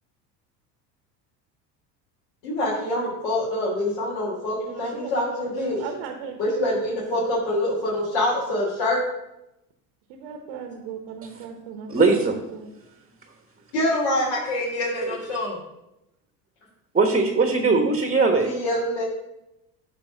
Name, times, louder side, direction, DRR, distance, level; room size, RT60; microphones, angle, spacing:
voice 1, 2.4-5.8 6.4-9.0 13.7-15.6 18.4-19.0, left 1 dB, 65° left, -7 dB, 3.1 m, -25 dB
voice 2, 4.5-7.2 10.1-12.7, right 6 dB, 70° right, 5 dB, 1.2 m, -38 dB
voice 3, 11.9-12.3 15.0-15.2 16.9-18.5, right 3 dB, 15° right, 5 dB, 1.1 m, -20 dB
10.5 x 3.5 x 6.3 m, 0.90 s
hypercardioid pair, 90°, 49 cm